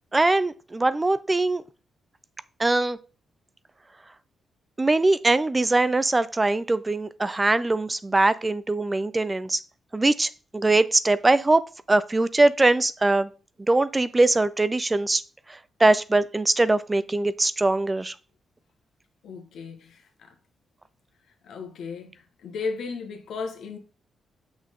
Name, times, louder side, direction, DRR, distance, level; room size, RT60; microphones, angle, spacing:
voice 1, 0.1-1.6 2.6-3.0 4.8-9.6 9.9-11.6 11.9-13.3 13.7-15.2 15.8-18.1, right 2 dB, 25° right, 0.5 m, -22 dB
voice 2, 19.2-20.3 21.4-23.8, left 4 dB, 75° left, 1.5 m, -35 dB
6.4 x 6.0 x 3.7 m
supercardioid pair, 55°, 0 cm